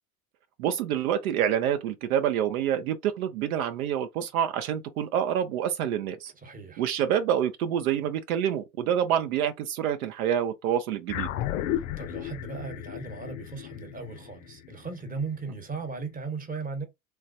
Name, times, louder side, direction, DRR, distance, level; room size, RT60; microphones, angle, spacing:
voice 1, 0.6-6.3 6.8-11.3, right 9 dB, 70° right, 0.6 m, -27 dB
voice 2, 6.4-6.9 11.7-16.9, right 4 dB, 20° right, 1.0 m, -37 dB
sound 1, 11.1-15.7, left 12 dB, 65° left, 0.5 m, -34 dB
3.3 x 2.2 x 2.6 m
hypercardioid pair, 75°, 45 cm